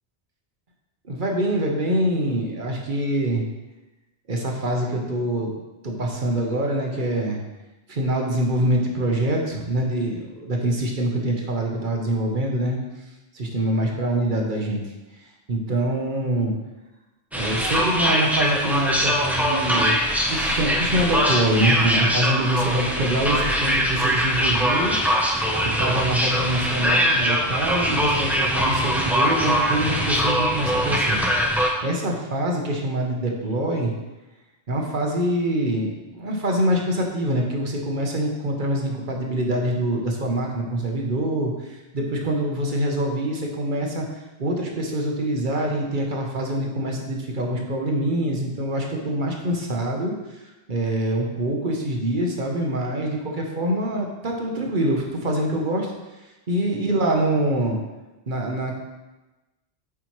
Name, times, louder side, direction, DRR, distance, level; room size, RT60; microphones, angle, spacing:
voice 1, 1.0-3.4 4.3-5.5 5.8-7.4 7.9-16.5 17.3-20.0 20.3-25.0 25.6-33.9 34.7-57.8 58.3-58.7, right 1 dB, 50° right, 0 dB, 1.1 m, -25 dB
sound 1, 17.3-31.7, equal, ahead, 0.6 m, -22 dB
8.4 x 4.9 x 3.1 m, 1.1 s
omnidirectional pair, 1.1 m